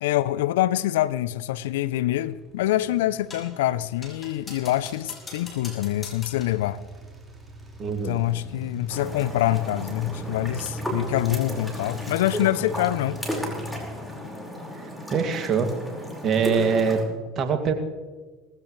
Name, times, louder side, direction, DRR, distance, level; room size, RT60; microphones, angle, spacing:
voice 1, 0.0-6.8 8.1-13.2, left 14 dB, 75° left, 0.5 m, -25 dB
sound 1, 1.8-13.8, right 1 dB, 15° right, 4.6 m, -41 dB
sound 2, 3.3-3.6 4.0-6.6, left 3 dB, 30° left, 5.7 m, -43 dB
voice 2, 7.8-8.2 14.8-15.7 16.2-17.0 17.4-17.7, right 6 dB, 45° right, 2.3 m, -24 dB
sound 3, 8.9-17.0, equal, ahead, 4.9 m, -34 dB
19.0 x 16.5 x 3.2 m
hypercardioid pair, 75°, 0 cm